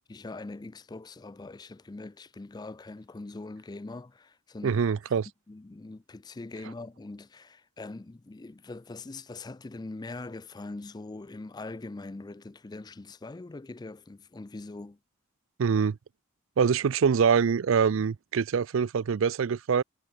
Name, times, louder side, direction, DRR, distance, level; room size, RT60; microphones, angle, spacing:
voice 1, 0.1-4.8 5.5-15.0, left 2 dB, 20° left, 0.4 m, -42 dB
voice 2, 4.6-5.3 15.6-16.0 16.6-19.8, right 6 dB, 65° right, 0.4 m, -24 dB
head